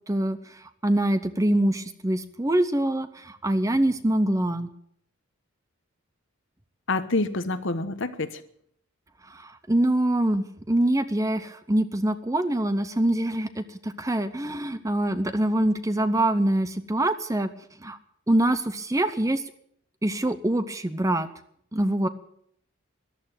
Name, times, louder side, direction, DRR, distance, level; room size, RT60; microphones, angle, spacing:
voice 1, 0.1-4.7 9.2-17.5 17.8-18.0 18.3-19.4 20.0-21.3 21.7-22.1, right 1 dB, 15° right, 11 dB, 0.7 m, -24 dB
voice 2, 6.9-8.4, left 2 dB, 55° left, 11 dB, 1.2 m, -27 dB
14.0 x 11.5 x 8.9 m, 0.68 s
head